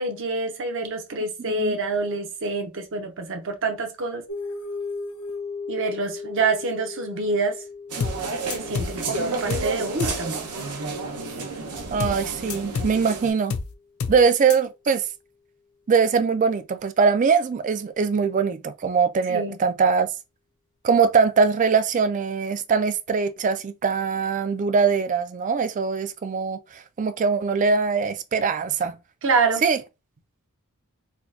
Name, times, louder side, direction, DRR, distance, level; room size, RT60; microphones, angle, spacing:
voice 1, 0.0-4.2 5.7-7.6 8.5-10.5 19.3-19.6 29.2-29.6, right 3 dB, 60° right, 0.7 m, -26 dB
sound 1, 4.3-13.2, left 4 dB, 85° left, 0.8 m, -38 dB
sound 2, 7.9-13.3, right 4 dB, 90° right, 0.8 m, -31 dB
sound 3, 8.0-8.2 8.5-9.0 9.5-9.7 10.0-10.2 12.0-12.2 12.5-13.0 13.5-13.7 14.0-14.2 14.5-14.6, left 5 dB, 65° left, 0.5 m, -28 dB
voice 2, 11.9-13.5 14.1-15.0 15.9-20.1 20.8-29.0 29.6-29.8, right 5 dB, 35° right, 0.3 m, -22 dB
4.2 x 2.2 x 2.6 m
head